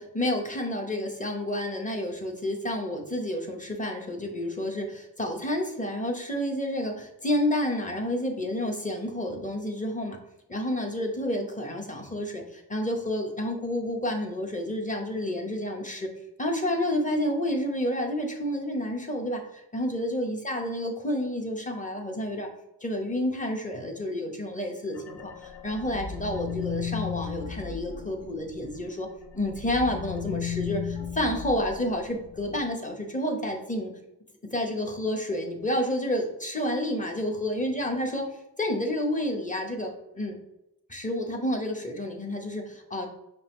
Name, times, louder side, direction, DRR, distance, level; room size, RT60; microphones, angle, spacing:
voice 1, 0.0-10.2 10.5-16.1 16.4-22.5 22.8-29.1 29.3-33.9 34.4-38.3 38.6-40.4 40.9-43.1, left 1 dB, 20° left, 2 dB, 1.0 m, -30 dB
sound 1, 24.9-28.9 29.2-32.6, left 7 dB, 80° left, 0.6 m, -36 dB
5.3 x 2.5 x 3.6 m, 0.85 s
cardioid pair, 65°, 41 cm